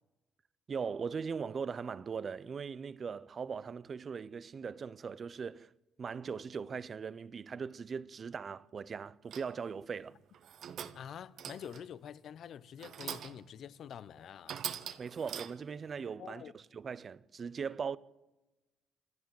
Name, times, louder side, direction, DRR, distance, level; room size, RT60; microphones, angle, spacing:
voice 1, 0.7-5.7 6.0-10.2 15.0-18.0, right 6 dB, 45° right, 0.7 m, -40 dB
sound 1, 9.3-9.7 10.3-11.1 11.4-11.9 12.8-13.5 13.9-14.0 14.5-15.8, right 9 dB, 70° right, 1.3 m, -43 dB
voice 2, 10.9-14.6 16.2-16.5, left 9 dB, 65° left, 0.8 m, -47 dB
27.5 x 12.5 x 7.8 m
cardioid pair, 90°, 0 cm